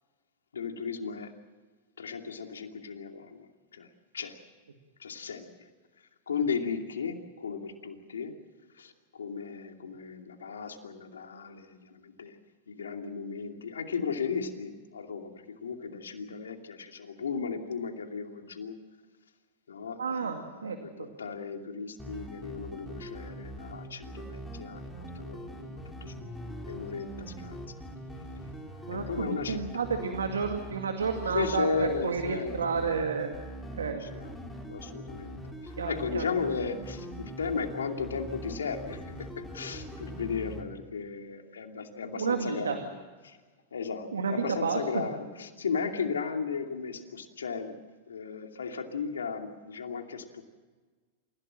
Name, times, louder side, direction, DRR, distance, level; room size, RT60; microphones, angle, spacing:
voice 1, 0.5-1.3 2.0-4.4 5.0-5.7 6.3-8.3 8.7-12.4 12.7-18.7 19.7-26.4 26.6-27.7 28.9-29.8 31.2-32.9 33.2-33.3 33.9-34.3 34.7-35.4 35.6-43.4 43.7-47.7 48.1-50.4, left 5 dB, 85° left, 5 dB, 2.6 m, -35 dB
voice 2, 20.0-21.1 28.9-33.3 33.7-34.0 35.8-36.2 42.2-42.8 44.1-45.0, right 5 dB, 85° right, 5 dB, 2.2 m, -31 dB
sound 1, 22.0-40.6, equal, 5° left, 4.6 m, -42 dB
28.5 x 16.5 x 7.6 m, 1.4 s
hypercardioid pair, 100°, 0 cm